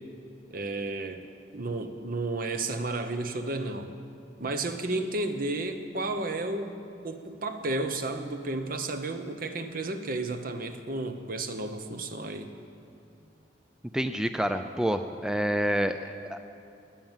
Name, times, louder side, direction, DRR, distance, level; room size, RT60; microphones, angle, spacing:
voice 1, 0.5-1.2 1.5-3.9 4.4-12.5, right 2 dB, 50° right, 8 dB, 1.0 m, -32 dB
voice 2, 13.9-16.4, equal, 5° right, 8 dB, 0.4 m, -28 dB
20.0 x 9.0 x 7.4 m, 2.6 s
head